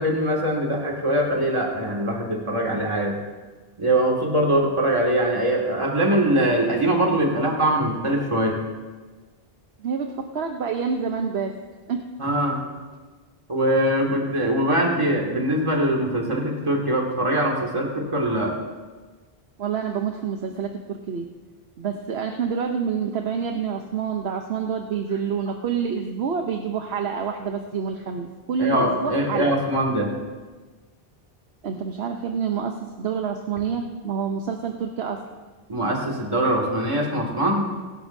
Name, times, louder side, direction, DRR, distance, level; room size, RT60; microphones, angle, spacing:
voice 1, 0.0-3.1 3.8-8.6 12.2-12.6 13.5-18.5 28.6-30.1 35.7-37.7, right 1 dB, 30° right, -1 dB, 2.2 m, -22 dB
voice 2, 9.8-11.5 11.9-12.0 19.6-21.2 21.8-29.5 31.6-35.2, right 6 dB, 85° right, 4 dB, 1.1 m, -27 dB
24.0 x 11.5 x 2.7 m, 1.3 s
omnidirectional pair, 1.0 m